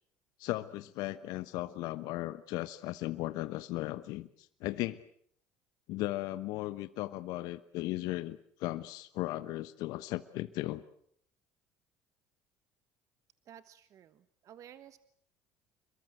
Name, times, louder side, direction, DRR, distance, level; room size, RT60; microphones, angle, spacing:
voice 1, 0.4-5.0 5.9-10.8, left 17 dB, 70° left, 12 dB, 1.1 m, -36 dB
voice 2, 13.4-15.0, right 10 dB, 55° right, 13 dB, 1.3 m, -54 dB
27.0 x 22.5 x 7.8 m, 0.65 s
hypercardioid pair, 75°, 7 cm